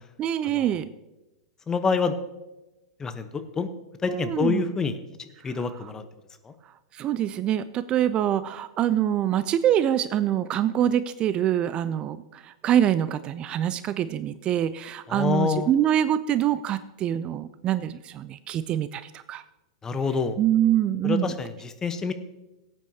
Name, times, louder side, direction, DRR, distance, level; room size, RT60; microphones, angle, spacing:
voice 1, 0.2-0.9 4.1-4.6 5.5-5.9 6.9-19.4 20.4-21.4, right 11 dB, 30° right, 15 dB, 0.4 m, -25 dB
voice 2, 1.7-2.2 3.0-3.7 4.0-5.0 5.4-6.0 6.4-6.5 15.1-15.7 19.8-20.4 21.0-22.1, left 5 dB, 20° left, 9 dB, 0.9 m, -27 dB
17.0 x 9.0 x 2.8 m, 1.0 s
hypercardioid pair, 110°, 3 cm